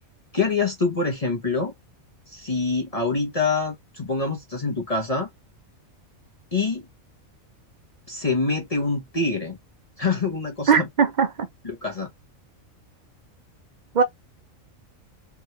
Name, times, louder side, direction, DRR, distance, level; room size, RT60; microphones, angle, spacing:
voice 1, 0.3-1.7 2.3-5.3 6.5-6.8 8.1-9.6 10.0-10.9 11.6-12.1, left 3 dB, 30° left, 1.0 m, -25 dB
voice 2, 10.7-11.5 13.9-14.0, right 6 dB, 50° right, 0.5 m, -19 dB
3.6 x 3.0 x 3.2 m
omnidirectional pair, 1.4 m